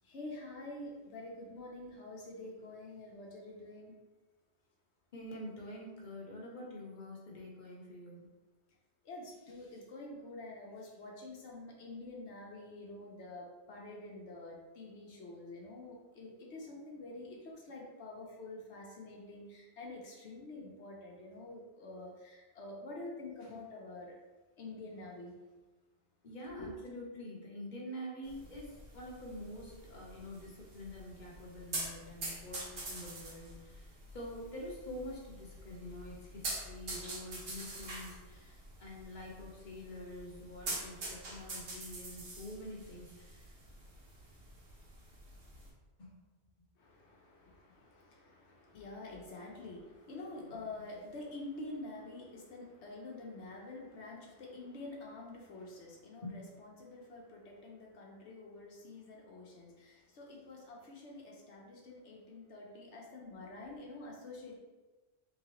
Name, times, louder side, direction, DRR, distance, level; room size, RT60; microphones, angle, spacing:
voice 1, 0.0-4.0 9.0-24.1 24.6-25.3 26.6-26.7 46.8-64.5, left 2 dB, 90° left, -2 dB, 1.1 m, -47 dB
voice 2, 5.1-8.2 26.2-33.9 34.1-43.5 46.0-46.1 50.7-50.9 56.2-56.4, left 1 dB, 45° left, -3 dB, 1.0 m, -46 dB
sound 1, 28.2-45.7, right 2 dB, 65° right, 1.1 m, -46 dB
3.9 x 3.2 x 3.0 m, 1.2 s
omnidirectional pair, 1.1 m